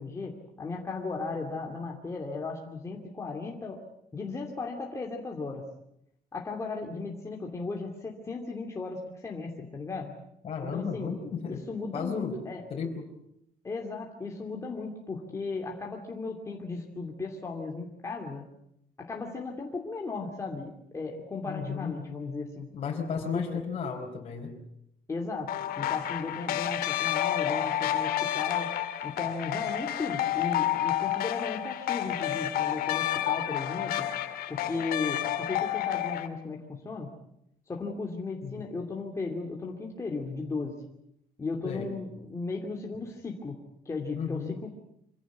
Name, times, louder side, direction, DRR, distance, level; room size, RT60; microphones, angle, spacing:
voice 1, 0.0-3.8 4.1-5.6 6.3-10.1 10.6-11.1 11.5-12.6 13.6-18.4 19.0-22.7 23.3-23.6 25.1-28.7 29.0-34.1 34.5-37.1 37.7-40.8 41.4-43.6 43.8-44.7, left 3 dB, 20° left, 0 dB, 2.7 m, -36 dB
voice 2, 10.4-11.6 11.9-12.4 12.7-13.1 21.5-21.9 22.7-24.6 38.4-38.7 41.6-42.0 44.1-44.5, left 6 dB, 40° left, -1 dB, 4.6 m, -34 dB
sound 1, 25.5-36.3, left 12 dB, 75° left, 2.0 m, -30 dB
26.0 x 17.0 x 9.4 m, 0.76 s
cardioid pair, 165°, 15 cm